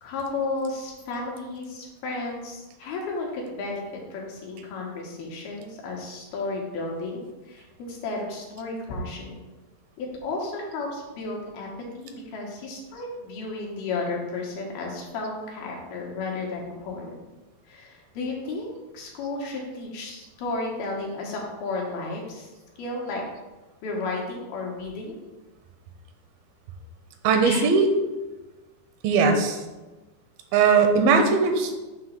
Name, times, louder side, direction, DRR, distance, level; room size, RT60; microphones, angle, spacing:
voice 1, 0.0-3.8 4.1-9.4 10.0-17.1 17.7-22.5 22.8-23.2 23.8-25.2 27.4-27.7, left 3 dB, 85° left, -2 dB, 3.0 m, -33 dB
voice 2, 27.2-27.9 29.0-29.6 30.5-31.7, right 5 dB, 80° right, 5 dB, 2.5 m, -19 dB
7.2 x 2.9 x 5.7 m, 1.1 s
omnidirectional pair, 4.2 m